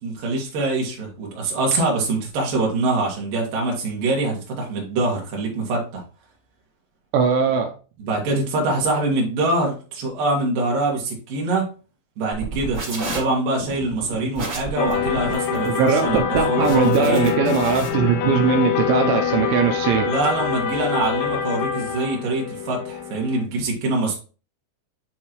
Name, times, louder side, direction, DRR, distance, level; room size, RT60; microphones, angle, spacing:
voice 1, 0.0-6.0 8.0-11.7 12.2-17.3 20.0-24.2, right 2 dB, 55° right, -2 dB, 3.3 m, -24 dB
voice 2, 7.1-7.8 15.6-20.1, right 6 dB, 85° right, 4 dB, 3.0 m, -20 dB
sound 1, 12.3-17.9, right 1 dB, 30° right, 2.4 m, -32 dB
sound 2, 14.8-23.4, left 8 dB, 80° left, 2.3 m, -25 dB
9.6 x 3.6 x 3.0 m, 0.36 s
omnidirectional pair, 5.3 m